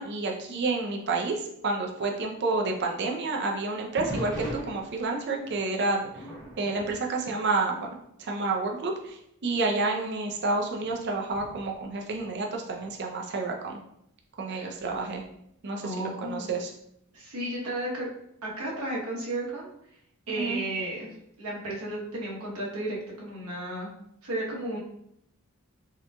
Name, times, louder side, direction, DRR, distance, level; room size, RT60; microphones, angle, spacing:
voice 1, 0.0-1.3 1.6-6.1 6.6-7.9 8.2-13.8 14.4-15.2 15.6-16.7 20.4-20.6, right 3 dB, 50° right, 1 dB, 0.5 m, -29 dB
sound 1, 4.0-8.1 8.4-8.8 9.4-9.5 10.2-12.9 14.8-15.3, right 1 dB, 5° left, 1.4 m, -41 dB
voice 2, 15.8-16.5 17.1-18.1 18.4-19.7 20.3-21.1 21.4-23.9 24.2-24.8, right 1 dB, 80° right, -4 dB, 1.0 m, -33 dB
3.7 x 2.9 x 2.2 m, 0.75 s
head